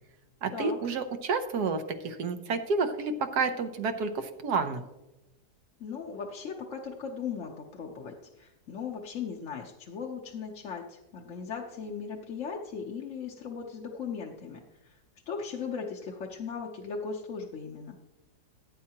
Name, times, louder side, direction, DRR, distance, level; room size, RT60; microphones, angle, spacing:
voice 1, 0.4-4.8, right 4 dB, 75° right, 7 dB, 1.4 m, -30 dB
voice 2, 5.8-15.0 15.3-18.0, left 6 dB, 55° left, 0 dB, 1.1 m, -38 dB
16.0 x 8.6 x 2.9 m, 1.0 s
omnidirectional pair, 1.7 m